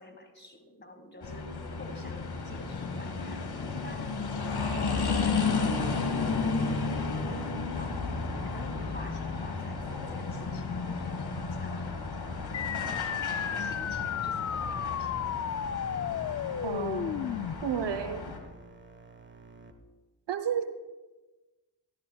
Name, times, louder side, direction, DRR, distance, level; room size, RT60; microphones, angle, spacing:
voice 1, 0.0-3.4 3.8-4.1 4.7-8.1 8.4-15.3, left 2 dB, 25° left, 6 dB, 1.7 m, -48 dB
sound 1, 1.2-18.4, left 4 dB, 60° left, 1.5 m, -33 dB
sound 2, 9.7-19.7, right 3 dB, 25° right, 1.1 m, -51 dB
sound 3, 12.5-17.5, left 9 dB, 40° left, 0.4 m, -33 dB
voice 2, 16.6-18.3 20.3-20.7, right 7 dB, 75° right, 10 dB, 0.8 m, -32 dB
12.5 x 12.5 x 2.3 m, 1.2 s
supercardioid pair, 40°, 42 cm